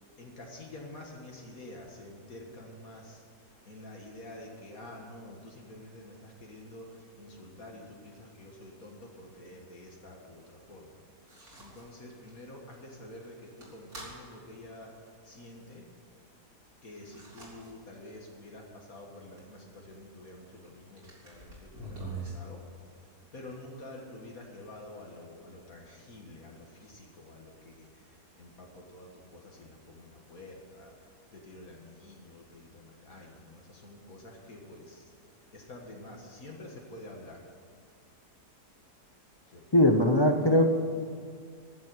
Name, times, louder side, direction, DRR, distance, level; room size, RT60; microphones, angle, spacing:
voice 1, 0.2-3.2 3.6-10.4 10.7-10.9 11.6-14.9 15.2-15.8 16.8-22.6 23.3-30.9 31.3-35.1 35.5-37.4 39.5-39.8, left 1 dB, 60° left, 0 dB, 2.1 m, -48 dB
sound 1, 11.2-11.9 12.3-12.4 12.7-12.8 13.1-14.1 17.0-17.7 18.2-18.3 19.4-19.5 20.6-20.7 21.0-22.3, right 3 dB, 60° right, 4.3 m, -44 dB
voice 2, 39.7-40.7, left 1 dB, 40° left, 5 dB, 0.3 m, -21 dB
14.5 x 7.5 x 9.3 m, 2.1 s
omnidirectional pair, 1.8 m